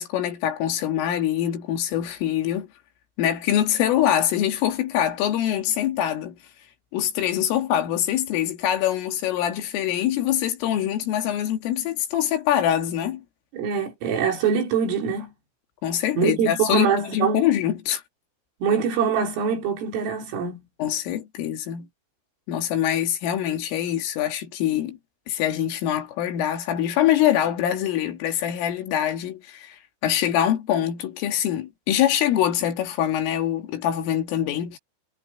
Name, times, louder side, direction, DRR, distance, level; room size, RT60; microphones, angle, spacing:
voice 1, 0.0-2.7 3.2-6.4 6.9-13.2 15.8-18.0 20.8-21.9 22.5-25.0 25.3-29.8 30.0-34.8, left 11 dB, 75° left, 4.7 m, -24 dB
voice 2, 13.5-15.3 16.2-17.4 18.6-20.6, right 6 dB, 70° right, 7.0 m, -24 dB
omnidirectional pair, 6.0 m